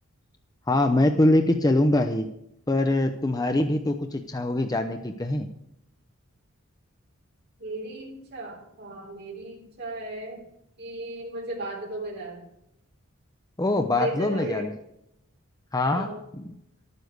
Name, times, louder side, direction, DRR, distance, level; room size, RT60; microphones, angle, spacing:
voice 1, 0.7-2.3 2.7-5.5 13.6-14.7 15.7-16.1 16.4-16.5, left 1 dB, 15° left, 5 dB, 0.7 m, -23 dB
voice 2, 7.6-10.4 10.8-12.5 14.0-14.7 15.9-16.2, right 1 dB, 50° right, -3 dB, 3.7 m, -35 dB
12.0 x 9.5 x 6.5 m, 0.79 s
head